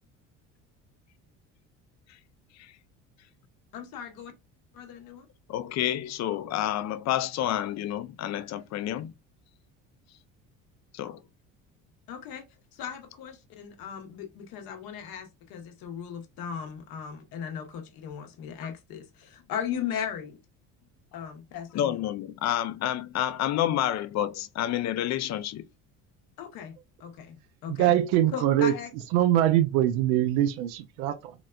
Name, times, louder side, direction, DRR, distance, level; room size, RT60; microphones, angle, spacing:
voice 1, 3.7-4.3 4.7-5.3 12.1-12.4 12.7-20.4 21.1-22.1 26.4-27.4 27.6-27.9 28.3-28.9, left 8 dB, 70° left, 1.0 m, -37 dB
voice 2, 5.5-9.1 10.9-11.2 21.7-25.6, left 12 dB, 50° left, 0.5 m, -29 dB
voice 3, 27.7-28.7 29.1-31.3, right 12 dB, 85° right, 0.5 m, -23 dB
4.0 x 2.1 x 2.3 m
supercardioid pair, 80°, 36 cm